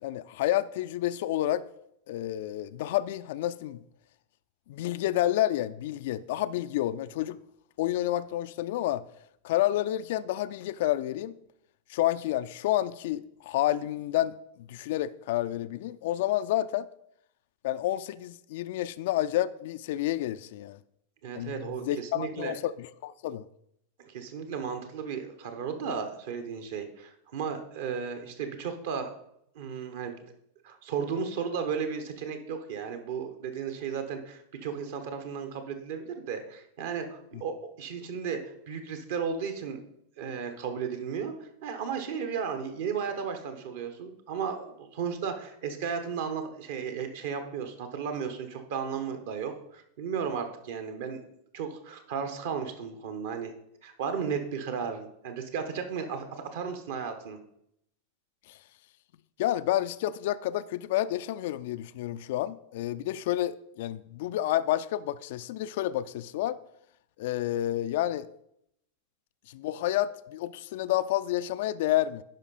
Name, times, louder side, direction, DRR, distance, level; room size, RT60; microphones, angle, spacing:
voice 1, 0.0-1.7 2.1-3.8 4.7-7.4 7.8-9.0 9.4-11.4 11.9-14.4 14.7-16.9 17.6-20.8 21.3-23.5 37.3-37.4 58.5-58.6 59.4-66.6 67.2-68.3 69.5-72.2, left 13 dB, 55° left, 0.3 m, -29 dB
voice 2, 21.2-22.6 24.0-29.1 29.5-30.2 30.6-39.8 40.2-51.2 51.5-53.5 53.8-57.4, right 6 dB, 55° right, 1.2 m, -34 dB
10.5 x 5.2 x 4.1 m
figure-of-eight pair, 90°, 0 cm